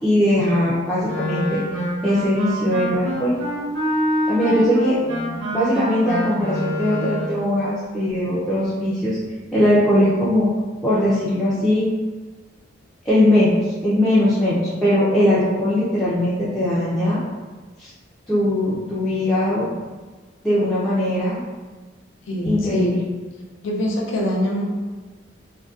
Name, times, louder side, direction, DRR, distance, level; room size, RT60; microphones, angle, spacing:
voice 1, 0.0-1.6 2.0-3.3 4.3-5.0 5.5-9.2 9.5-10.5 10.8-11.9 13.1-13.5 13.8-17.2 17.8-17.9 18.3-19.7 20.4-21.4 22.5-23.0, left 1 dB, ahead, -12 dB, 0.4 m, -20 dB
Wind instrument woodwind instrument, 1.0-7.4, equal, 75° right, 0.7 m, -26 dB
voice 2, 22.3-23.0 23.6-24.6, equal, 85° left, -2 dB, 0.5 m, -23 dB
2.5 x 2.1 x 2.3 m, 1.3 s
head